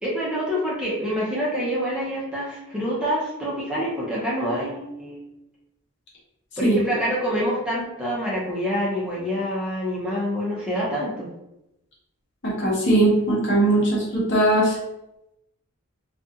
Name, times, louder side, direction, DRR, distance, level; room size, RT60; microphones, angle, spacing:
voice 1, 0.0-5.2 6.6-11.3, equal, 5° right, -7 dB, 0.5 m, -26 dB
voice 2, 12.4-14.8, right 1 dB, 55° left, -4 dB, 0.9 m, -20 dB
2.4 x 2.3 x 2.7 m, 0.88 s
head